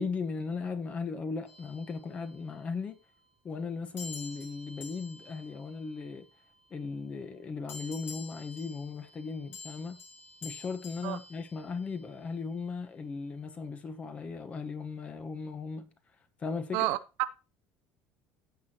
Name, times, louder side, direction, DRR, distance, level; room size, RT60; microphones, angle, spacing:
voice 1, 0.0-3.0 3.4-6.3 6.7-10.0 10.4-15.9 16.4-16.9, left 4 dB, 30° left, 1.3 m, -37 dB
sound 1, 1.5-2.7 4.0-6.7 7.7-12.2, left 3 dB, 60° left, 5.4 m, -49 dB
voice 2, 16.7-17.3, right 17 dB, 80° right, 0.8 m, -30 dB
15.5 x 6.1 x 3.0 m
cardioid pair, 135°, 4 cm